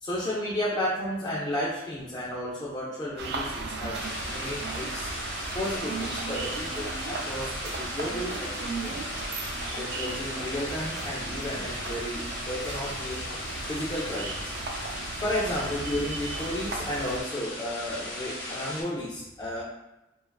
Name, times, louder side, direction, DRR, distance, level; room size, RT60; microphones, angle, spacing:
voice 1, 0.0-4.0 4.3-5.1 5.5-9.2 9.8-13.2 13.7-14.5 15.2-19.6, left 1 dB, 20° left, -7 dB, 0.3 m, -33 dB
sound 1, 3.2-17.2, right 3 dB, 60° right, 0.3 m, -36 dB
sound 2, 4.0-18.8, left 1 dB, 80° left, 0.6 m, -37 dB
2.4 x 2.3 x 2.2 m, 0.95 s
head